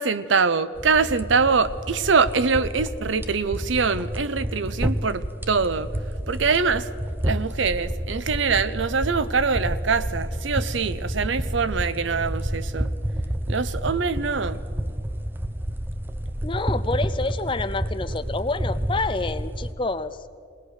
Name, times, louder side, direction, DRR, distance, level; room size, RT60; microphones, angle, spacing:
voice 1, 0.0-5.9 6.3-6.9 7.2-12.9 13.5-14.6, right 5 dB, 80° right, 0.7 m, -23 dB
sound 1, 0.8-19.7, equal, 10° right, 0.7 m, -30 dB
voice 2, 16.4-20.2, left 3 dB, 25° left, 0.6 m, -28 dB
21.5 x 19.5 x 6.5 m
head